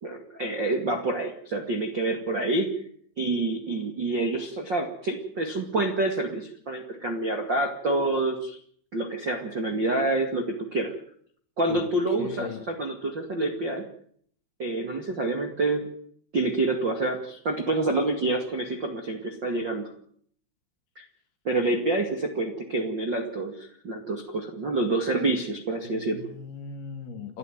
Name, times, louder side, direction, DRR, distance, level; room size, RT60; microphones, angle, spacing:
voice 1, 0.0-2.7 3.2-8.6 8.9-10.9 11.6-13.9 14.6-15.9 16.3-19.9 21.0-21.1 21.4-26.3, right 2 dB, 40° right, 1.6 m, -27 dB
voice 2, 12.2-12.7 25.8-27.4, left 5 dB, 60° left, 3.5 m, -38 dB
29.5 x 12.5 x 9.3 m
omnidirectional pair, 5.6 m